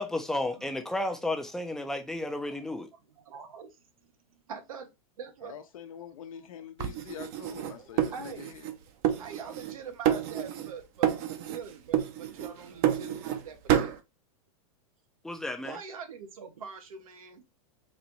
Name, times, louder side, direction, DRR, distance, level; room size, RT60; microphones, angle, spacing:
voice 1, 0.0-2.9 15.2-15.8, left 1 dB, 5° left, 0.4 m, -32 dB
voice 2, 2.5-4.1 4.5-5.6 7.8-8.6 9.2-14.0 15.6-17.4, right 6 dB, 90° right, 0.9 m, -44 dB
voice 3, 5.4-8.7, left 9 dB, 80° left, 0.8 m, -45 dB
sound 1, 6.8-8.7 9.0-9.8 10.0-10.7 11.0-11.6 11.9-13.4 13.7-14.0, right 10 dB, 45° right, 0.6 m, -29 dB
4.1 x 2.5 x 3.0 m
hypercardioid pair, 140°, 18 cm